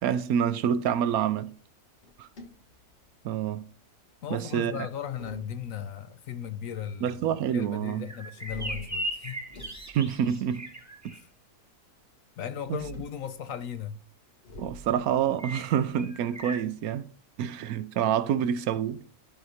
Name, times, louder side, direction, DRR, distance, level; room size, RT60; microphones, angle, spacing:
voice 1, 0.0-1.5 2.2-2.3 3.2-3.6 4.3-4.7 7.0-8.0 9.9-10.7 11.0-11.1 12.7-12.8 14.6-17.1 17.4-19.0, right 9 dB, 70° right, 1.0 m, -27 dB
sound 1, 2.0-3.4 4.7-6.1 8.4-11.0 12.5-13.3 14.4-16.8, equal, 45° left, 1.8 m, -47 dB
voice 2, 4.2-7.2 7.5-9.4 11.1-11.3 12.4-14.0, left 8 dB, 65° left, 1.0 m, -36 dB
sound 2, 8.1-11.2 15.4-16.6, right 1 dB, 10° right, 1.3 m, -38 dB
12.0 x 4.2 x 4.9 m
omnidirectional pair, 1.7 m